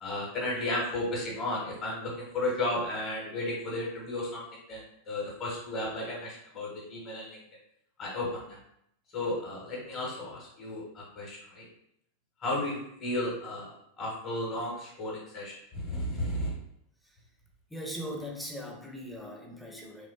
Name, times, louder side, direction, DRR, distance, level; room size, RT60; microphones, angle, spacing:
voice 1, 0.0-4.4 4.7-4.8 5.1-7.4 8.0-8.6 9.1-11.6 12.4-13.7 14.0-16.5, left 1 dB, 25° left, -4 dB, 0.9 m, -33 dB
voice 2, 17.7-20.1, equal, ahead, 1 dB, 0.5 m, -40 dB
3.0 x 2.1 x 2.8 m, 0.72 s
figure-of-eight pair, 90°, 0 cm